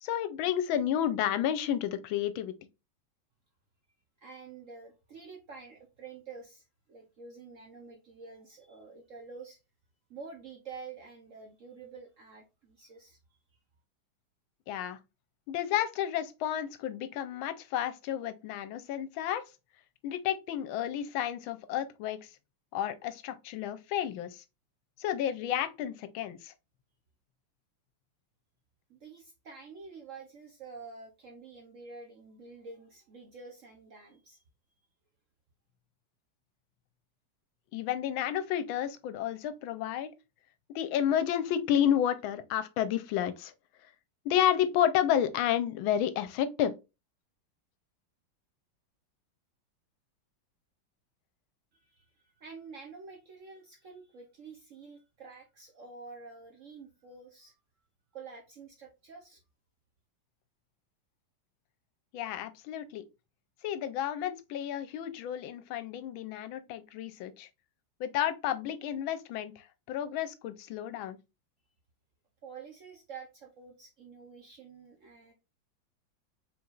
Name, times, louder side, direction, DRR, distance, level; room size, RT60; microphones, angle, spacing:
voice 1, 0.0-2.5 14.7-15.0 15.5-19.4 20.0-22.2 22.7-24.4 25.0-26.5 37.7-40.1 40.7-43.5 44.2-46.7 62.1-63.0 63.6-67.5 68.0-69.5 69.9-71.2, left 10 dB, 80° left, 1.4 m, -31 dB
voice 2, 4.2-9.6 10.1-13.6 28.9-34.4 51.7-57.5 58.1-59.4 72.4-75.3, right 4 dB, 60° right, 0.9 m, -48 dB
4.6 x 4.0 x 2.4 m
omnidirectional pair, 2.2 m